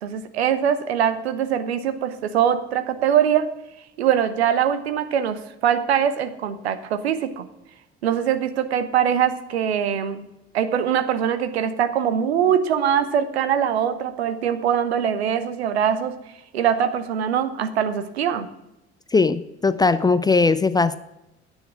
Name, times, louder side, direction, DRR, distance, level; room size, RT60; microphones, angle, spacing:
voice 1, 0.0-3.5 4.0-7.5 8.0-10.2 10.5-16.2 16.5-18.5, right 9 dB, 75° right, 12 dB, 0.8 m, -22 dB
voice 2, 19.1-21.0, left 4 dB, 15° left, 14 dB, 0.4 m, -19 dB
10.5 x 9.0 x 4.7 m, 0.92 s
figure-of-eight pair, 55°, 33 cm